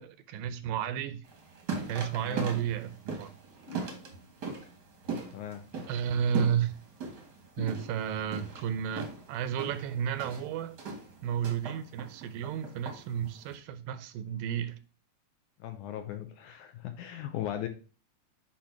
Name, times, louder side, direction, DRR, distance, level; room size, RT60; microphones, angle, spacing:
voice 1, 0.0-1.2 1.9-3.3 5.9-6.8 7.6-10.8 11.2-14.8, right 8 dB, 80° right, 2.3 m, -32 dB
sound 1, 1.2-13.5, right 4 dB, 55° right, 1.1 m, -40 dB
voice 2, 2.2-2.6 5.3-5.7 15.6-17.7, left 11 dB, 75° left, 2.0 m, -38 dB
sound 2, 3.7-4.5 7.6-8.5, left 5 dB, 55° left, 2.0 m, -46 dB
8.6 x 2.9 x 5.7 m
omnidirectional pair, 4.0 m